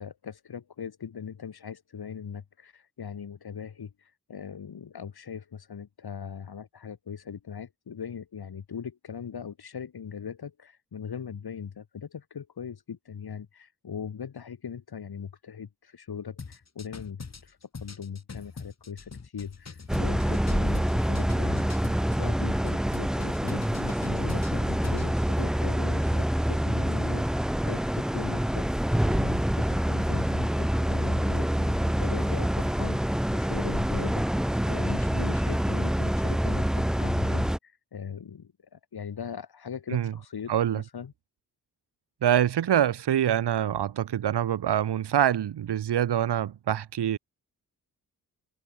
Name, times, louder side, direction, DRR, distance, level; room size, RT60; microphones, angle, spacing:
voice 1, 0.0-41.1, left 7 dB, 70° left, 4.8 m, -40 dB
sound 1, 16.4-22.3 22.7-25.1, left 5 dB, 40° left, 2.5 m, -42 dB
sound 2, 19.9-37.6, equal, ahead, 0.4 m, -26 dB
voice 2, 40.5-40.8 42.2-47.2, right 10 dB, 80° right, 1.7 m, -25 dB
cardioid pair, 55°, 40 cm